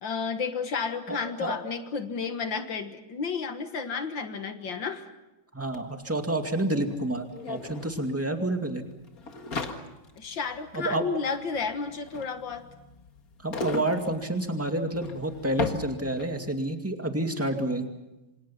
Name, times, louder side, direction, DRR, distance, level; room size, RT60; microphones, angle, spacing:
voice 1, 0.0-5.1 9.5-9.8 10.2-12.7, left 5 dB, 65° left, 8 dB, 2.1 m, -32 dB
voice 2, 1.1-1.5 5.5-8.8 10.7-11.0 13.4-17.8, right 1 dB, 5° right, 4 dB, 2.1 m, -29 dB
sound 1, 5.7-5.8 6.0-16.5, left 4 dB, 45° left, 2.2 m, -38 dB
27.5 x 26.5 x 5.8 m, 1.0 s
omnidirectional pair, 2.3 m